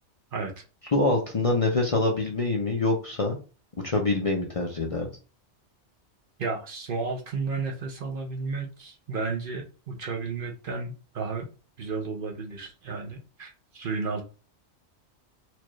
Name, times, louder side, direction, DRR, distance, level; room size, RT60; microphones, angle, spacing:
voice 1, 0.9-3.4 3.8-5.1, left 2 dB, 35° left, 0.6 m, -25 dB
voice 2, 6.4-11.5 11.8-14.2, right 4 dB, 55° right, 0.8 m, -33 dB
4.5 x 2.4 x 3.0 m
omnidirectional pair, 1.2 m